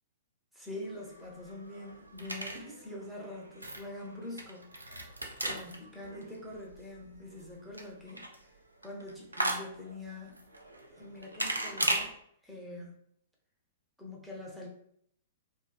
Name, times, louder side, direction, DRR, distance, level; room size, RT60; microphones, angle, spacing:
voice 1, 0.5-5.1 5.4-8.3 8.8-10.5 10.9-12.1 12.4-13.0 14.0-14.7, left 1 dB, ahead, -3 dB, 0.7 m, -44 dB
sound 1, 0.8-12.1, right 1 dB, 90° right, 0.4 m, -38 dB
2.5 x 2.5 x 2.2 m, 0.69 s
figure-of-eight pair, 110°, 0 cm